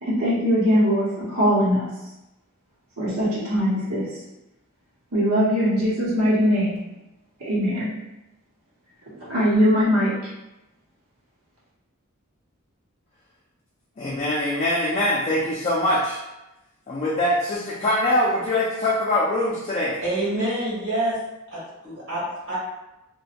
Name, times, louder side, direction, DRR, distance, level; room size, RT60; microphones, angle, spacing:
voice 1, 0.0-1.9 3.0-4.0 5.1-6.8 7.4-7.9 9.2-10.1, equal, 90° right, -8 dB, 0.9 m, -21 dB
voice 2, 14.0-16.2 16.9-20.0, left 1 dB, 30° left, -5 dB, 0.4 m, -23 dB
voice 3, 20.0-21.2 21.5-22.5, right 1 dB, 60° right, -11 dB, 1.4 m, -27 dB
2.8 x 2.2 x 2.4 m, 0.95 s
head